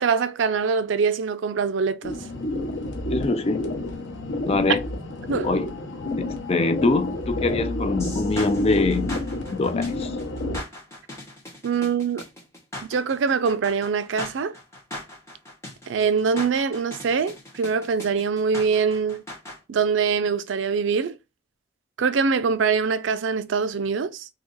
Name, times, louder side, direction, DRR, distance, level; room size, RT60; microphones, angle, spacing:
voice 1, 0.0-2.2 5.3-5.5 11.6-12.2 12.8-14.5 15.9-19.2 19.7-21.2 22.0-24.3, right 5 dB, 85° right, 0.4 m, -23 dB
sound 1, 2.0-10.6, left 2 dB, 85° left, 0.8 m, -30 dB
voice 2, 3.1-3.8 4.5-4.9 5.4-5.7 6.3-9.1 9.5-10.1, left 3 dB, 35° left, 0.4 m, -23 dB
sound 2, 8.0-19.6, left 1 dB, 15° left, 1.2 m, -39 dB
2.8 x 2.4 x 3.9 m
head